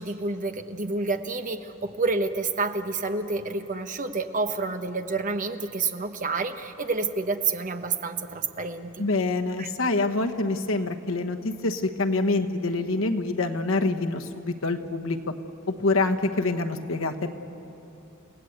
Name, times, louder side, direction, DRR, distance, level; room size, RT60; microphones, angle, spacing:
voice 1, 0.0-9.1 9.6-9.7, right 3 dB, 40° right, 7 dB, 1.1 m, -29 dB
voice 2, 9.0-15.2 15.8-17.3, left 2 dB, 80° left, 5 dB, 1.3 m, -26 dB
30.0 x 17.5 x 8.1 m, 2.9 s
head